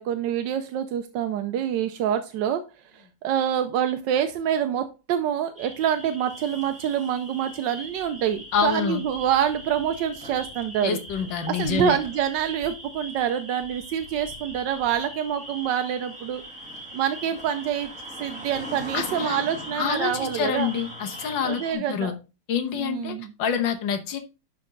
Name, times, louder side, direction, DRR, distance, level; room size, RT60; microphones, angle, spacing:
voice 1, 0.0-2.7 2.9-11.0 11.5-16.4 16.9-17.9 18.2-20.7 21.4-22.1 22.8-23.3, right 9 dB, 70° right, 8 dB, 1.1 m, -26 dB
sound 1, 5.6-21.7, equal, 5° right, 2.3 m, -40 dB
voice 2, 8.5-9.0 10.8-12.0 18.9-19.4 19.7-22.1 22.5-24.2, left 7 dB, 60° left, 6 dB, 1.7 m, -27 dB
11.5 x 4.4 x 3.8 m, 0.29 s
omnidirectional pair, 2.4 m